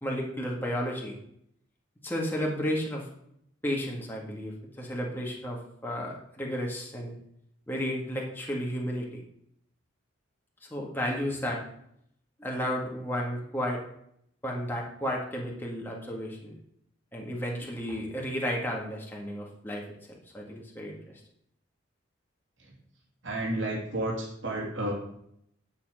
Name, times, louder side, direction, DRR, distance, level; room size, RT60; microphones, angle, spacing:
voice 1, 0.0-1.2 2.0-3.1 3.6-7.2 7.7-9.2 10.7-11.6 12.4-13.8 14.4-16.5 17.1-19.8 20.3-21.0, equal, 10° left, -2 dB, 1.8 m, -32 dB
voice 2, 23.2-24.9, right 1 dB, 65° right, -3 dB, 2.8 m, -31 dB
10.0 x 7.1 x 5.0 m, 0.71 s
head